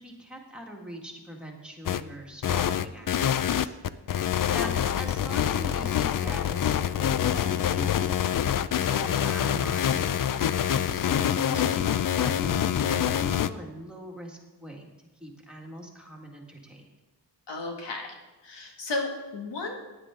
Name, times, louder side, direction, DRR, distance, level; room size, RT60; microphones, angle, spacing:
voice 1, 0.0-3.8 4.5-8.5 8.9-11.0 11.4-14.9 15.2-16.9, equal, ahead, -1 dB, 1.8 m, -42 dB
sound 1, 1.9-2.0 2.4-13.5, left 9 dB, 50° left, 0.5 m, -26 dB
voice 2, 17.5-18.1 18.4-19.7, left 2 dB, 85° left, 0 dB, 2.1 m, -33 dB
15.5 x 10.0 x 3.7 m, 1.1 s
wide cardioid pair, 170°, 41 cm